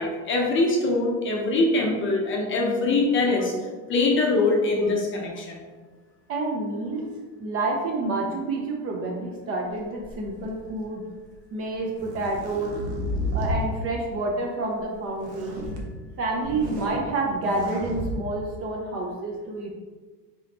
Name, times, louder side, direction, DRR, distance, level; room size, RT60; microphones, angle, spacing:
voice 1, 0.0-3.5 3.9-5.6, left 2 dB, 25° left, -1 dB, 0.6 m, -23 dB
voice 2, 6.3-7.1 7.4-11.0 11.5-12.8 13.3-15.6 16.2-19.7, right 2 dB, 30° right, 0 dB, 0.5 m, -28 dB
sound 1, 10.0-10.8 11.7-13.6 15.2-15.8 16.3-17.0 17.4-18.1, equal, 80° right, 1.0 m, -32 dB
3.8 x 3.5 x 2.8 m, 1.4 s
supercardioid pair, 130°, 46 cm